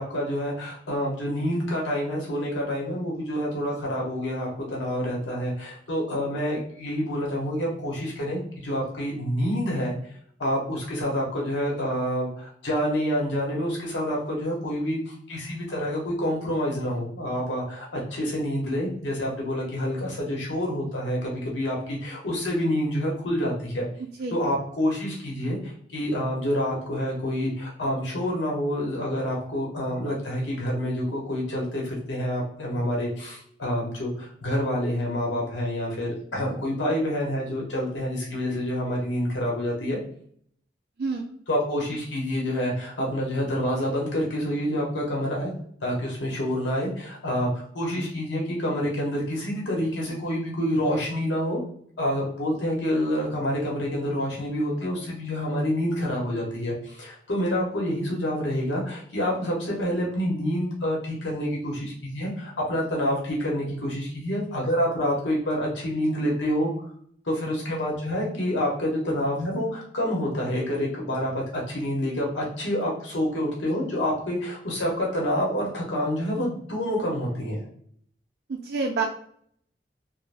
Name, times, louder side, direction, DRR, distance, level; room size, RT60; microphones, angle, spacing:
voice 1, 0.0-9.9 10.4-23.9 24.3-40.0 41.5-45.5 45.8-51.6 52.0-66.9 67.2-77.6, equal, 90° left, -2 dB, 0.8 m, -27 dB
voice 2, 78.5-79.0, right 4 dB, 60° right, 0 dB, 0.4 m, -27 dB
2.5 x 2.0 x 3.2 m, 0.62 s
head